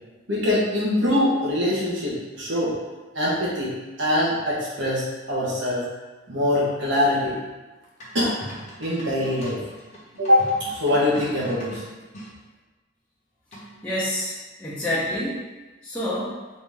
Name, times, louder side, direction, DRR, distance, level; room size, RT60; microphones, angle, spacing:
voice 1, 0.3-2.7 3.1-5.8 6.3-7.4 8.1-8.3 8.8-9.6 10.2-11.8, left 1 dB, 60° right, -6 dB, 1.3 m, -23 dB
sound 1, 8.0-12.3 13.5-13.9, equal, 35° left, 0.9 m, -41 dB
voice 2, 13.8-15.4 15.8-16.4, left 1 dB, 5° left, -11 dB, 0.7 m, -28 dB
4.2 x 2.7 x 3.6 m, 1.2 s
head